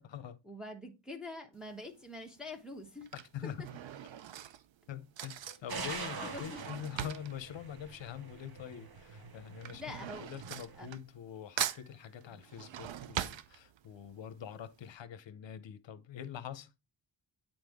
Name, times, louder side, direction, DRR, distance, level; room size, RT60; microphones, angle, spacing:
voice 1, 0.4-3.1 3.4-3.7 5.5-5.6 6.2-6.7 9.7-10.3 10.8-10.9 12.3-12.4, left 2 dB, ahead, 0.9 m, -45 dB
Drawer open or close / Cutlery silverware, 1.6-2.0 2.8-8.7 8.9-11.3 11.6-14.1 14.5-14.6 14.8-14.9, right 11 dB, 70° right, 0.6 m, -41 dB
voice 2, 3.1-3.6 4.9-16.7, left 9 dB, 65° left, 0.7 m, -45 dB
sound 1, 5.7-10.9, right 4 dB, 50° right, 0.9 m, -45 dB
8.7 x 4.1 x 3.5 m
wide cardioid pair, 135°, 48 cm